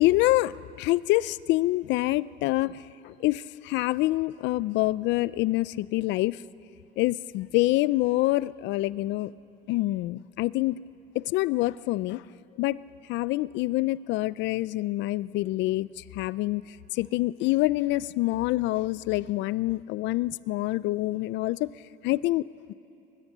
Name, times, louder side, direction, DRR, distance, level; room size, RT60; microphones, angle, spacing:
voice 1, 0.0-6.4 7.0-9.3 9.7-10.8 11.1-12.2 12.6-12.8 13.1-21.7 22.0-22.5, left 18 dB, 75° left, 20 dB, 0.5 m, -26 dB
22.0 x 21.5 x 7.3 m, 2.7 s
cardioid pair, 130°, 19 cm